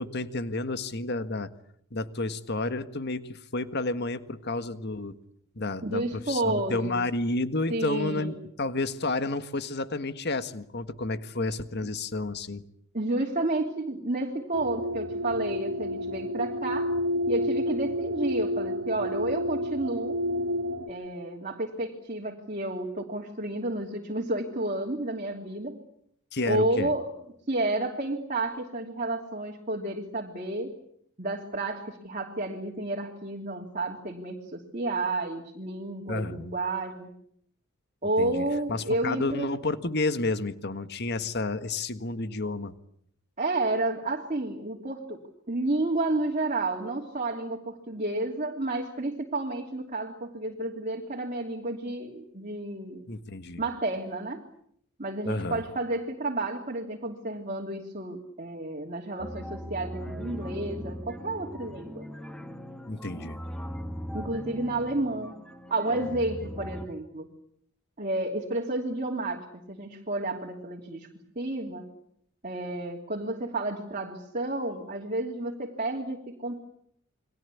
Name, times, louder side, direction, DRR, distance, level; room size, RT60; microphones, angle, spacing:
voice 1, 0.0-1.5 1.9-5.2 5.6-12.6 26.3-26.9 36.1-36.5 38.2-42.7 53.1-53.6 55.3-55.6 62.9-63.4, left 2 dB, 50° left, 11 dB, 1.6 m, -31 dB
voice 2, 5.8-7.0 7.7-8.3 12.9-16.9 17.3-20.2 20.9-25.8 26.5-27.1 27.5-30.7 31.2-37.1 38.0-39.5 43.4-45.2 45.5-53.0 53.6-54.4 55.0-62.1 64.1-65.3 65.7-67.3 68.0-71.1 71.3-71.9 72.4-76.6, right 2 dB, 35° right, 0 dB, 3.0 m, -31 dB
sound 1, 14.5-20.9, equal, 90° right, 2.0 m, -30 dB
sound 2, 59.2-66.9, equal, 5° left, 2.1 m, -39 dB
29.5 x 23.0 x 8.5 m, 0.68 s
head